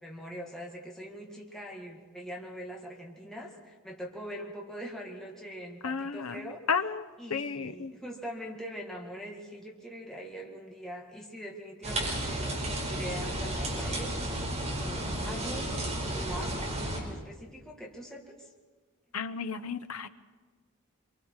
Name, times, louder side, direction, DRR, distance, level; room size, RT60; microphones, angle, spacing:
voice 1, 0.0-6.6 7.2-14.1 14.8-18.5, equal, ahead, -2 dB, 2.2 m, -42 dB
voice 2, 5.8-6.4 6.7-7.0 7.3-7.9 19.1-20.1, left 5 dB, 75° left, 9 dB, 1.0 m, -32 dB
sound 1, 11.8-17.0, right 1 dB, 30° right, 4.8 m, -33 dB
27.0 x 24.0 x 4.9 m, 1.4 s
head